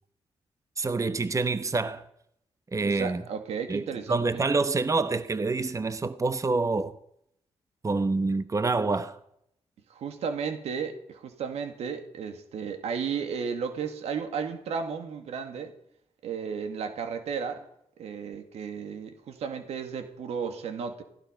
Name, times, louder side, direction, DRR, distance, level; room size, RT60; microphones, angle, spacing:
voice 1, 0.8-2.0 2.7-3.2 3.7-7.0 7.8-9.2, right 3 dB, 30° right, 1.0 m, -27 dB
voice 2, 2.8-4.4 9.9-15.7 16.2-17.7 18.0-21.0, right 6 dB, 90° right, 2.2 m, -34 dB
16.5 x 16.0 x 5.2 m
cardioid pair, 65°, 11 cm